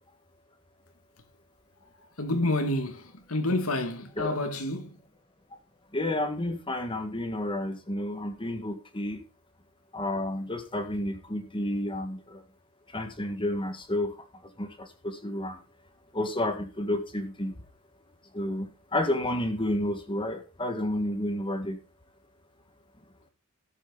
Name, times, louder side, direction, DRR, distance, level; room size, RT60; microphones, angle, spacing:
voice 1, 2.2-4.9, left 1 dB, 85° left, 2.2 m, -29 dB
voice 2, 5.9-9.2 9.9-12.4 12.9-14.1 14.6-15.6 16.1-17.5 18.3-21.8, left 1 dB, 25° left, 1.7 m, -31 dB
13.5 x 8.7 x 4.0 m
head